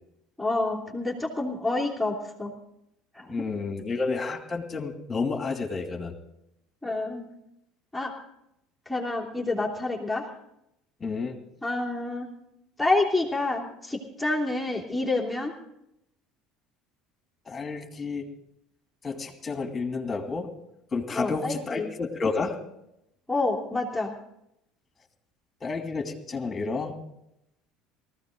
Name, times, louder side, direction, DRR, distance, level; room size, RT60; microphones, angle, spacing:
voice 1, 0.4-2.5 3.1-3.4 6.8-7.3 7.9-8.1 8.9-10.2 11.6-12.3 12.8-15.5 21.1-21.9 23.3-24.1, left 2 dB, 5° left, -2 dB, 3.0 m, -28 dB
voice 2, 3.3-6.1 11.0-11.4 17.5-18.3 19.0-20.5 20.9-22.6 25.6-26.9, left 4 dB, 25° left, 4 dB, 2.6 m, -30 dB
19.0 x 15.0 x 3.9 m, 0.81 s
hypercardioid pair, 75°, 0 cm